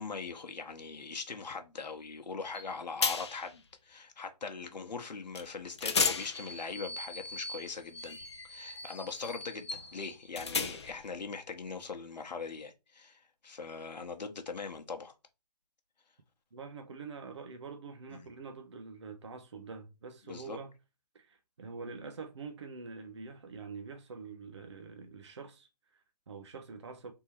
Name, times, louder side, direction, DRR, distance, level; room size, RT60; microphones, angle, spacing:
voice 1, 0.0-8.2 8.5-15.1 18.1-18.2 20.3-20.6, left 4 dB, 90° left, 0.9 m, -41 dB
sound 1, 2.5-2.7 3.0-3.5 5.3-5.5 5.8-11.1, left 4 dB, 40° left, 0.5 m, -35 dB
voice 2, 16.5-20.7 21.1-27.1, right 4 dB, 45° right, 0.6 m, -45 dB
3.6 x 2.8 x 4.2 m
hypercardioid pair, 170°, 21 cm